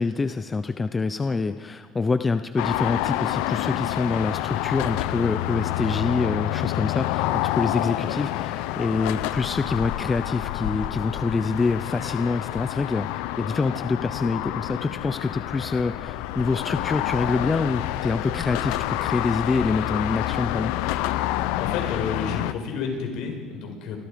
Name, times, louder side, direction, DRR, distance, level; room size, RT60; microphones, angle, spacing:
voice 1, 0.0-20.7, left 4 dB, 20° left, 10 dB, 0.8 m, -26 dB
sound 1, 2.6-22.5, left 15 dB, 90° left, 0.9 m, -28 dB
voice 2, 21.3-24.0, left 5 dB, 70° left, 3 dB, 6.0 m, -31 dB
29.5 x 25.0 x 5.3 m, 1.5 s
cardioid pair, 145°, 0 cm